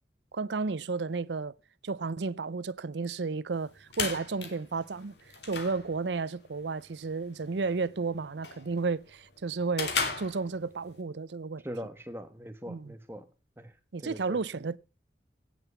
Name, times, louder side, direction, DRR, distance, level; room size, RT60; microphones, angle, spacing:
voice 1, 0.3-1.5 1.8-5.1 5.4-11.6 12.7-12.9 13.9-14.8, right 4 dB, 85° right, 0.6 m, -32 dB
sound 1, 3.5-11.0, left 4 dB, 80° left, 3.0 m, -38 dB
voice 2, 11.6-13.2 13.6-13.7 14.0-14.4, equal, 15° right, 1.4 m, -41 dB
17.0 x 7.8 x 5.8 m
head